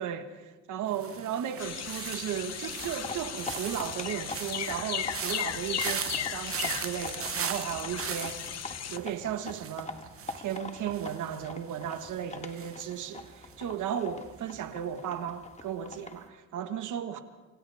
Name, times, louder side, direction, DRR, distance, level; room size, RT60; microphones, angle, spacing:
voice 1, 0.7-8.6 8.9-10.0 10.4-17.2, right 9 dB, 80° right, 1.7 m, -35 dB
sound 1, 0.9-14.0 14.2-14.7, right 9 dB, 45° right, 0.9 m, -40 dB
sound 2, 1.6-9.0, left 10 dB, 60° left, 0.8 m, -36 dB
sound 3, 2.8-16.3, left 3 dB, 25° left, 1.5 m, -44 dB
27.5 x 27.0 x 3.6 m
cardioid pair, 90°, 30 cm